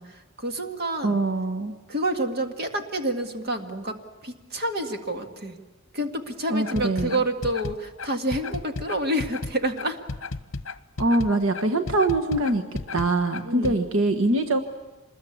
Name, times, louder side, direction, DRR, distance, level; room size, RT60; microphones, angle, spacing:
voice 1, 0.0-1.2 1.9-5.6 5.9-10.0 13.4-13.9, right 1 dB, 50° right, 5 dB, 2.0 m, -29 dB
voice 2, 1.0-1.7 6.5-7.2 11.0-12.6 12.9-14.6, right 2 dB, 75° right, 5 dB, 1.4 m, -23 dB
sound 1, 6.6-13.8, left 3 dB, 70° left, 1.0 m, -33 dB
26.0 x 21.0 x 8.6 m, 1.2 s
head